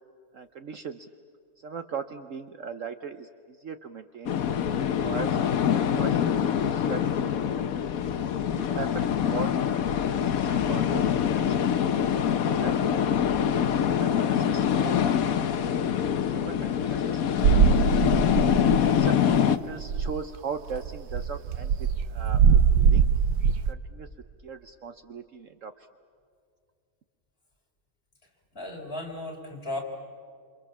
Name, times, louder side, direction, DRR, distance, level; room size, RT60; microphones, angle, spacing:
voice 1, 0.3-1.1 1.6-4.7 5.0-7.9 8.5-11.0 11.3-13.1 13.7-15.7 16.3-17.8 18.1-18.3 18.8-23.1 23.7-24.1 24.4-25.9, right 5 dB, 55° right, 9 dB, 1.1 m, -39 dB
sound 1, 4.3-19.6, left 8 dB, 65° left, 1.3 m, -25 dB
sound 2, 17.4-19.1 19.3-19.5 19.7-20.2 20.7-23.7, right 7 dB, 75° right, 1.3 m, -22 dB
voice 2, 28.5-29.8, left 1 dB, 35° left, 0 dB, 4.8 m, -35 dB
28.5 x 28.0 x 7.3 m, 2.3 s
omnidirectional pair, 1.7 m